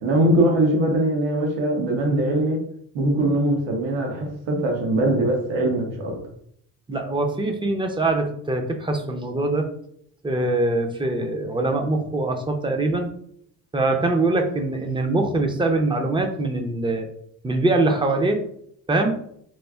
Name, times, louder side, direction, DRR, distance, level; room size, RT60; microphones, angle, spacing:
voice 1, 0.0-2.6 2.9-6.2, right 1 dB, 85° right, 0 dB, 0.9 m, -21 dB
voice 2, 6.9-9.7 10.2-13.1 13.7-17.1 17.4-18.4 18.9-19.2, right 2 dB, 10° right, 4 dB, 0.4 m, -23 dB
4.2 x 2.4 x 2.3 m, 0.68 s
cardioid pair, 90°, 44 cm